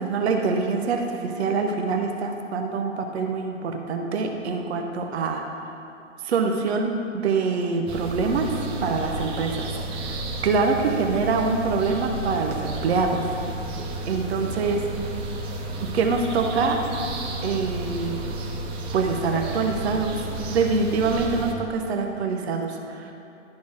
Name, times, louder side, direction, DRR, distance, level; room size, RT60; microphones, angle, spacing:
voice 1, 0.0-5.4 6.2-10.2 10.4-13.3 14.0-14.8 15.9-16.8 17.4-18.3 18.9-23.1, right 4 dB, 60° right, 3 dB, 0.9 m, -25 dB
sound 1, 7.9-21.5, right 1 dB, 15° right, 0.5 m, -32 dB
11.5 x 4.1 x 4.8 m, 2.7 s
figure-of-eight pair, 115°, 37 cm